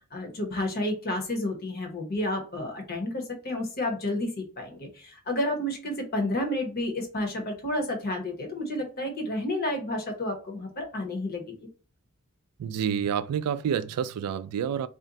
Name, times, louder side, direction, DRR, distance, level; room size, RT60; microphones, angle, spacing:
voice 1, 0.1-11.5, left 1 dB, 45° left, 0.8 m, -31 dB
voice 2, 12.6-14.9, right 8 dB, 90° right, 0.3 m, -28 dB
2.5 x 2.1 x 3.8 m
head